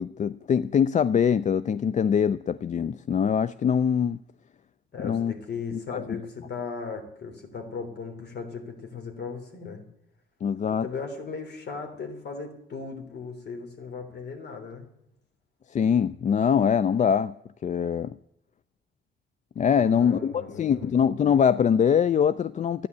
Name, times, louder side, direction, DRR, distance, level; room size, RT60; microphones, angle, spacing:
voice 1, 0.0-4.2 5.0-5.3 5.7-6.2 10.4-10.9 15.7-17.3 17.6-18.2 19.6-22.9, left 7 dB, 40° left, 16 dB, 0.4 m, -23 dB
voice 2, 4.9-9.8 10.7-14.9 19.8-20.9, left 5 dB, 55° left, 5 dB, 3.4 m, -37 dB
12.5 x 9.6 x 8.3 m, 0.79 s
cardioid pair, 90°, 20 cm